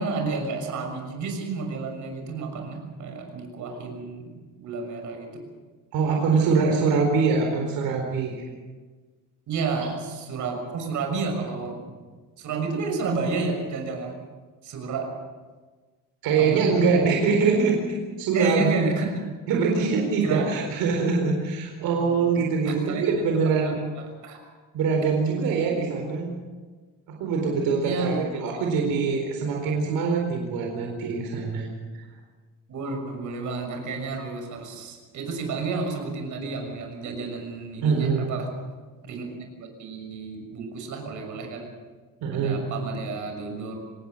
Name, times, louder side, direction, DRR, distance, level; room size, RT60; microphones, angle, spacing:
voice 1, 0.0-4.3 4.6-5.4 6.3-6.4 9.5-11.9 12.4-14.2 14.6-15.1 16.4-16.9 18.3-19.2 20.2-20.6 21.8-23.2 23.6-24.4 27.8-28.7 32.7-38.5 39.0-41.7 42.3-43.8, right 4 dB, 60° right, 3 dB, 6.4 m, -31 dB
voice 2, 5.9-8.4 16.2-17.8 18.2-18.9 19.5-23.8 24.7-26.3 27.1-31.7 31.9-32.0 37.8-38.3 42.2-42.6, right 5 dB, 85° right, 1 dB, 4.3 m, -23 dB
26.0 x 19.0 x 6.6 m, 1.4 s
cardioid pair, 155°, 34 cm